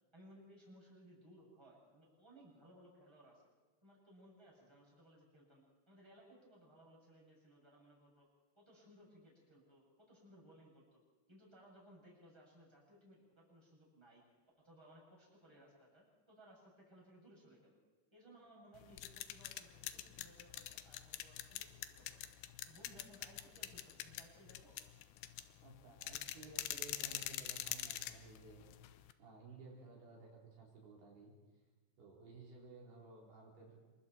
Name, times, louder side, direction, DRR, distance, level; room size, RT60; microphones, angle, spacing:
voice 1, 0.1-3.4 3.8-8.3 8.5-11.0 11.3-14.2 14.6-17.8 18.1-22.2 22.6-24.8, equal, 5° right, -3 dB, 6.6 m, -62 dB
sound 1, 18.8-29.1, left 13 dB, 90° left, 3.0 m, -45 dB
voice 2, 25.6-28.9 29.2-31.3 32.0-33.8, right 3 dB, 70° right, -2 dB, 5.9 m, -56 dB
27.0 x 23.0 x 4.5 m, 1.3 s
omnidirectional pair, 4.9 m